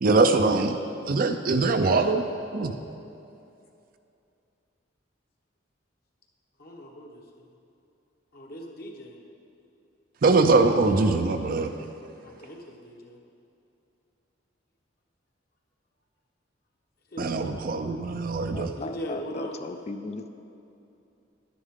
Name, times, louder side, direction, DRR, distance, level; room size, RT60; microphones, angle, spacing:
voice 1, 0.0-0.8 1.1-2.2 2.5-2.7 10.2-11.7 17.2-18.7, right 3 dB, 45° right, 7 dB, 0.4 m, -22 dB
voice 2, 6.6-7.4 8.3-9.2 12.2-13.2 17.1-17.4 18.7-19.6, equal, 50° left, 0 dB, 1.1 m, -39 dB
voice 3, 18.5-20.3, left 3 dB, 35° left, 9 dB, 0.4 m, -37 dB
11.0 x 9.9 x 3.7 m, 2.7 s
head